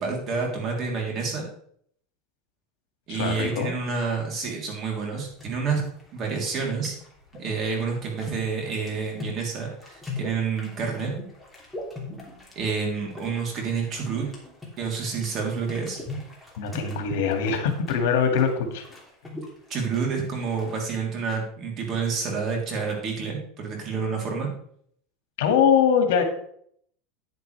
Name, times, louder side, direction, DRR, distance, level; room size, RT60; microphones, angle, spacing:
voice 1, 0.0-1.5 3.1-5.8 6.1-6.9 7.4-11.1 12.5-14.3 14.8-16.0 19.7-24.5, right 5 dB, 35° right, 0 dB, 3.4 m, -28 dB
voice 2, 3.1-3.7 16.6-18.8 25.4-26.2, left 7 dB, 75° left, 5 dB, 2.1 m, -22 dB
sound 1, 5.2-21.0, left 2 dB, ahead, 2.9 m, -41 dB
9.7 x 9.4 x 3.4 m, 0.64 s
supercardioid pair, 140°, 0 cm